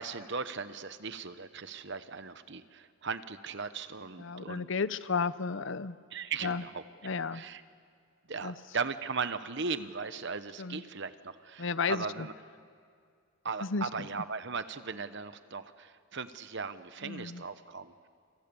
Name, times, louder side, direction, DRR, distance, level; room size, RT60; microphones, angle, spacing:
voice 1, 0.0-4.7 6.1-6.8 7.3-7.6 8.3-12.3 13.4-18.1, right 5 dB, 55° right, 12 dB, 1.0 m, -38 dB
voice 2, 4.2-6.0 6.4-6.6 7.0-7.4 8.4-8.5 10.6-10.8 11.6-12.3 13.6-14.1 17.0-17.4, left 5 dB, 55° left, 15 dB, 0.7 m, -33 dB
29.0 x 27.5 x 7.1 m, 2.2 s
head